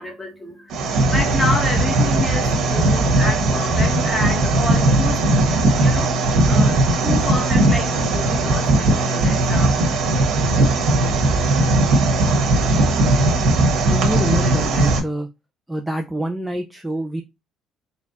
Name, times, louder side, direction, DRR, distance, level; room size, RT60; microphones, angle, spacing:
voice 1, 0.0-5.3 5.8-9.7, left 1 dB, 10° left, 1.1 m, -29 dB
sound 1, 0.7-15.0, right 2 dB, 65° right, 1.4 m, -18 dB
voice 2, 13.8-15.3 15.7-17.2, right 1 dB, 5° right, 0.5 m, -26 dB
4.2 x 2.3 x 4.1 m
cardioid pair, 135°, 0 cm